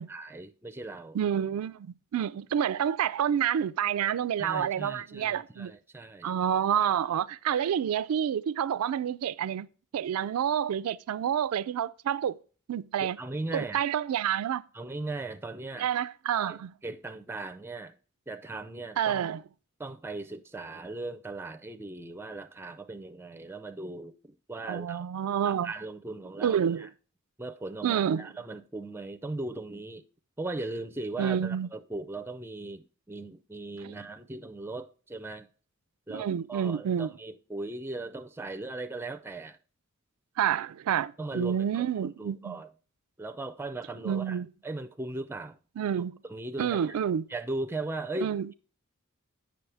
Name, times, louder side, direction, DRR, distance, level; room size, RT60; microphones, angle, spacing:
voice 1, 0.0-1.2 4.4-6.3 13.0-13.8 14.7-15.9 16.8-17.9 18.3-19.2 19.8-24.2 24.5-25.1 25.5-26.9 27.4-30.0 30.4-35.5 36.1-39.6 41.2-41.8 42.2-42.7 43.2-45.6 46.3-46.8 47.3-48.3, right 2 dB, 10° right, 0.4 m, -38 dB
voice 2, 1.1-5.7 6.2-9.7 9.9-12.4 12.7-13.2 13.5-14.6 15.8-16.7 19.0-19.4 24.7-25.7 26.4-26.9 27.8-28.3 31.2-31.7 33.8-33.9 36.1-37.1 40.4-42.6 44.0-44.5 45.8-46.2 46.6-47.3 48.2-48.5, right 9 dB, 90° right, 0.3 m, -28 dB
8.3 x 6.2 x 3.3 m
head